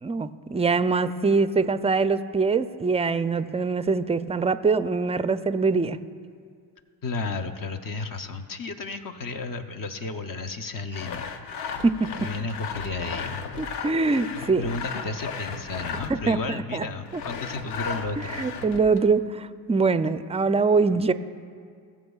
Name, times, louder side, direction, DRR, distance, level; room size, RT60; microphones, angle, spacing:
voice 1, 0.0-6.0 11.8-12.3 13.6-14.7 16.1-16.9 17.1-17.2 18.4-21.1, right 4 dB, 15° right, 12 dB, 0.4 m, -23 dB
voice 2, 7.0-11.4 12.2-13.4 14.6-18.4, left 3 dB, 45° left, 7 dB, 0.8 m, -33 dB
Sawing, 10.9-16.3 17.1-19.1, left 5 dB, 90° left, 0.7 m, -35 dB
19.0 x 7.0 x 2.4 m, 2.1 s
hypercardioid pair, 50°, 48 cm